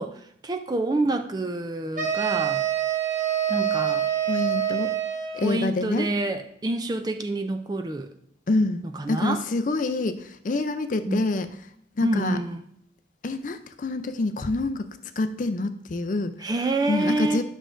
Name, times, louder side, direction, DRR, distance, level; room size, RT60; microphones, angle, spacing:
voice 1, 0.0-2.6 3.5-4.1 5.4-8.1 8.9-9.4 11.1-11.2 12.0-12.6 16.4-17.4, right 2 dB, 20° right, 7 dB, 0.4 m, -27 dB
sound 1, 2.0-5.6, right 10 dB, 40° right, 1.1 m, -26 dB
voice 2, 4.3-4.9 5.3-6.1 8.5-8.8 9.1-11.5 12.0-12.4 13.2-14.9 15.2-16.5 16.9-17.4, left 2 dB, 45° left, 9 dB, 0.4 m, -26 dB
11.0 x 6.2 x 2.5 m, 0.69 s
head